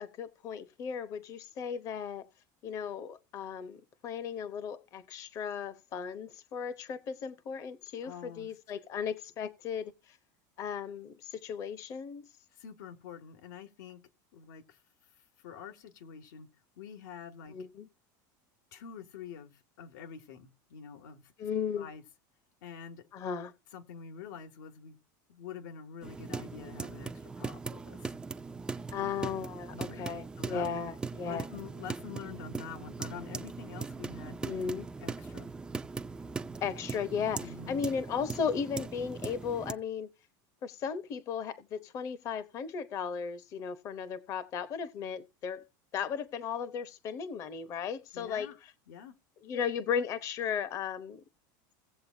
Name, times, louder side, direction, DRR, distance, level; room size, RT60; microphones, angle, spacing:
voice 1, 0.0-2.2 2.6-3.8 4.0-10.2 10.6-12.3 17.5-17.9 21.4-21.9 23.1-23.5 28.9-31.5 34.4-34.9 36.6-40.1 40.6-45.6 45.9-48.5 49.4-51.2, left 7 dB, 30° left, 0.9 m, -36 dB
voice 2, 8.0-8.5 12.6-14.0 14.3-14.8 15.4-16.5 16.8-17.6 18.7-21.3 21.7-22.0 22.6-23.1 23.7-25.0 25.3-28.1 29.7-30.1 30.4-30.7 31.3-34.4 35.0-35.5 37.4-37.8 48.1-48.6 48.9-49.2, left 7 dB, 85° left, 2.2 m, -46 dB
sound 1, 26.0-39.7, right 4 dB, 10° right, 0.5 m, -40 dB
17.0 x 7.7 x 2.7 m
supercardioid pair, 165°, 10 cm